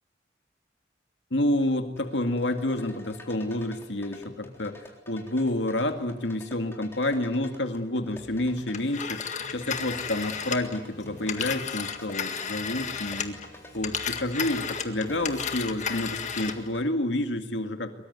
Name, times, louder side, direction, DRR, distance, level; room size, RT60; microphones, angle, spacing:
voice 1, 1.3-9.2 9.5-13.4 13.7-17.9, left 1 dB, 80° left, 6 dB, 2.1 m, -29 dB
sound 1, 2.0-16.8, left 1 dB, 15° left, 3.8 m, -49 dB
sound 2, 8.1-16.8, equal, 55° right, 7.2 m, -51 dB
Telephone, 8.7-13.5 13.8-16.7, left 7 dB, 40° left, 1.9 m, -33 dB
23.5 x 22.5 x 9.5 m, 0.96 s
head